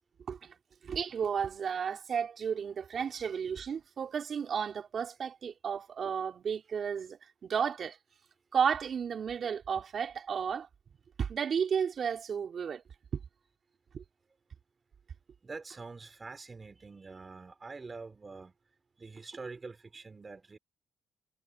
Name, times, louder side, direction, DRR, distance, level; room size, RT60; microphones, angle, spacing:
voice 1, 0.8-8.0 8.5-10.7 11.2-12.8 13.1-13.2 13.9-14.0, right 7 dB, 55° right, 4.4 m, -33 dB
voice 2, 15.4-18.5 19.0-20.6, right 4 dB, 30° right, 5.4 m, -45 dB
cardioid pair, 90°, 0 cm